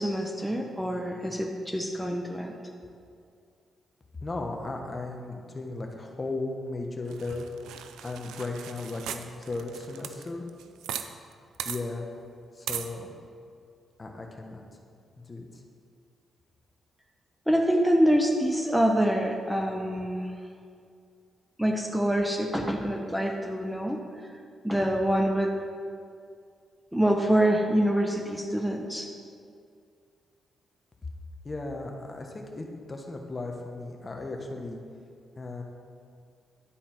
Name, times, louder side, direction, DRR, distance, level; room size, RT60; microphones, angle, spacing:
voice 1, 0.0-2.5 17.5-20.3 21.6-24.0 24.6-25.5 26.9-29.1, equal, 5° right, 2 dB, 0.9 m, -25 dB
voice 2, 4.2-7.5 8.0-10.5 11.6-12.1 12.5-13.2 14.0-14.6 15.2-15.6 31.4-34.8 35.4-35.6, left 2 dB, 35° left, 2 dB, 1.2 m, -36 dB
sound 1, 7.1-11.1 11.3-11.4 11.6-11.8 12.7-12.9, right 9 dB, 90° right, 0.4 m, -38 dB
11.5 x 4.2 x 5.9 m, 2.3 s
cardioid pair, 70°, 0 cm